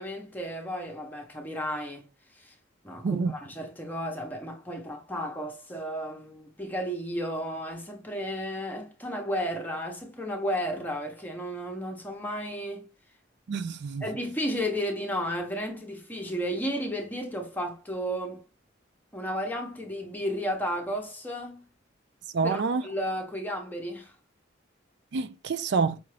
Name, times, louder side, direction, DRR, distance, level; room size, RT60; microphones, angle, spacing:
voice 1, 0.0-2.1 2.3-2.5 2.8-12.9 14.0-18.4 19.1-21.7 22.4-24.1, equal, 10° left, 0.8 m, -33 dB
voice 2, 13.5-14.0 22.3-22.8 25.1-26.0, right 4 dB, 60° right, 0.4 m, -27 dB
5.6 x 2.5 x 3.2 m
head